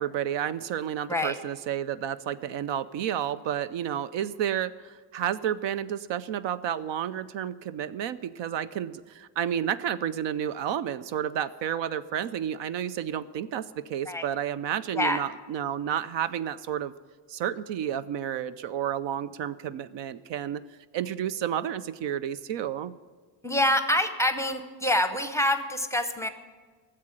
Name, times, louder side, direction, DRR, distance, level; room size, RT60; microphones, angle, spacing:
voice 1, 0.0-16.9 17.3-20.6 20.9-22.9, right 10 dB, 65° right, 15 dB, 0.6 m, -31 dB
voice 2, 23.4-26.3, left 1 dB, 5° left, 9 dB, 0.7 m, -26 dB
13.5 x 7.7 x 8.9 m, 1.5 s
cardioid pair, 140°, 47 cm